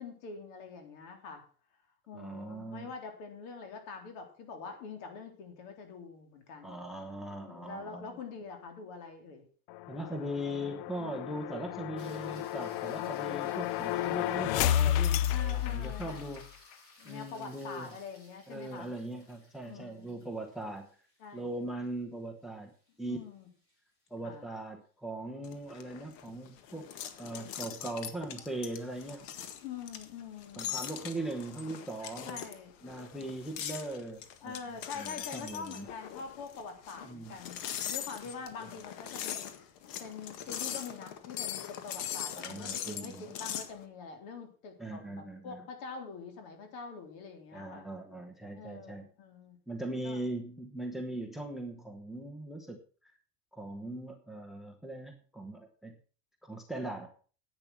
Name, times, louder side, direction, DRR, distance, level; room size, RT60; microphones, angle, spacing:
voice 1, 0.0-1.4 2.1-6.8 7.4-9.4 10.6-11.3 15.3-16.2 17.0-18.9 19.6-20.2 21.2-21.6 23.0-23.5 24.2-24.5 29.6-30.8 32.3-32.7 33.2-33.3 34.4-37.6 37.9-39.6 40.0-47.9 48.5-49.6 50.0-50.3, left 5 dB, 65° left, 5 dB, 3.7 m, -45 dB
voice 2, 2.1-2.9 6.6-8.2 9.9-16.5 17.0-17.9 18.5-20.9 21.3-22.7 23.0-23.2 24.1-26.9 27.2-29.3 30.6-32.4 32.8-35.9 37.1-37.3 42.3-43.3 44.8-45.6 47.5-49.1 49.7-52.8 53.5-55.9 56.4-57.1, right 1 dB, ahead, 5 dB, 0.9 m, -40 dB
sound 1, 9.7-16.5, left 12 dB, 50° left, 0.4 m, -32 dB
sound 2, 12.0-24.4 28.8-28.9, left 1 dB, 30° left, 4.5 m, -59 dB
sound 3, 25.4-43.7, left 10 dB, 90° left, 1.8 m, -41 dB
10.5 x 8.8 x 6.0 m, 0.41 s
cardioid pair, 175°, 47 cm